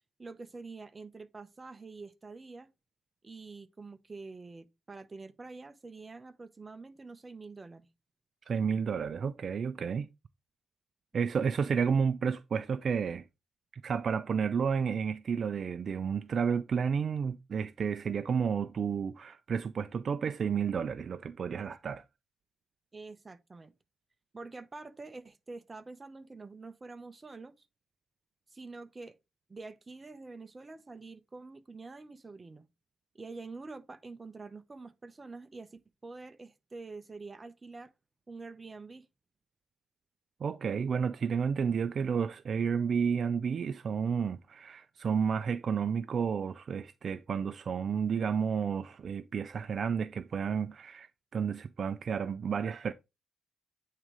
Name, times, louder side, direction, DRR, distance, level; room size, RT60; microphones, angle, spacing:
voice 1, 0.2-2.7 3.2-7.9 11.1-11.3 21.6-21.7 22.9-23.7 24.3-27.7 28.5-29.2 29.5-32.7 33.1-37.9 38.3-39.1, right 3 dB, 30° right, 0.9 m, -46 dB
voice 2, 8.5-10.1 11.1-13.2 13.7-22.0 40.4-52.9, right 6 dB, 55° right, 0.4 m, -31 dB
8.8 x 3.7 x 3.2 m
cardioid pair, 80°, 0 cm